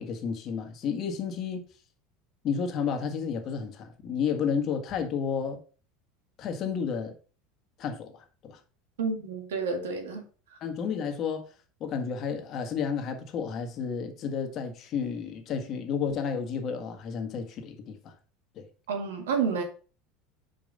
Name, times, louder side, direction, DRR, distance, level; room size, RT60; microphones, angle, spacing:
voice 1, 0.0-1.6 2.4-5.6 6.4-7.1 7.8-8.2 8.4-8.6 10.6-11.4 11.8-18.1 18.5-18.7, left 6 dB, 45° left, 1.5 m, -31 dB
voice 2, 9.0-10.2 18.9-19.6, right 5 dB, 90° right, 1.8 m, -29 dB
5.3 x 5.1 x 5.3 m
supercardioid pair, 100°, 0 cm